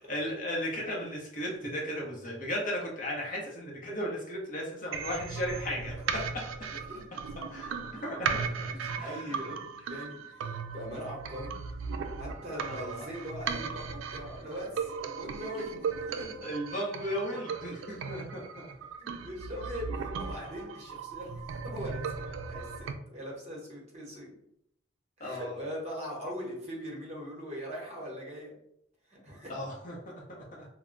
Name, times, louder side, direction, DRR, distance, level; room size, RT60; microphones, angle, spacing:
voice 1, 0.1-6.2 7.5-7.7 8.0-8.4 9.0-9.3 12.7-13.0 16.4-18.4 25.2-25.5 29.5-30.7, equal, 40° left, -2 dB, 0.7 m, -35 dB
sound 1, 4.9-22.9, right 5 dB, 80° right, 0.3 m, -37 dB
voice 2, 6.7-7.0 7.4-11.5 12.2-16.3 19.0-24.3 25.2-28.5 29.1-29.5, equal, 35° right, -3 dB, 0.9 m, -41 dB
2.2 x 2.1 x 3.7 m, 0.75 s
head